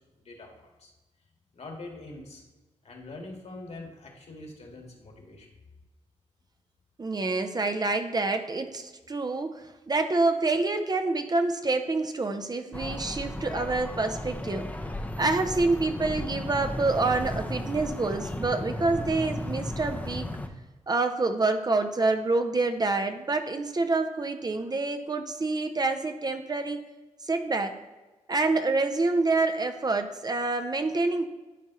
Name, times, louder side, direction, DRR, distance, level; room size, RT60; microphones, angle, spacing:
voice 1, 0.2-0.9 1.5-2.4 2.8-5.5, left 2 dB, 60° left, 1 dB, 1.8 m, -44 dB
voice 2, 7.0-14.7 15.2-20.3 20.9-26.8 27.2-27.8 28.3-31.2, right 3 dB, 35° right, 7 dB, 0.6 m, -27 dB
sound 1, 12.7-20.5, left 1 dB, 10° left, 0.7 m, -35 dB
11.0 x 4.2 x 3.1 m, 1.2 s
cardioid pair, 70°, 12 cm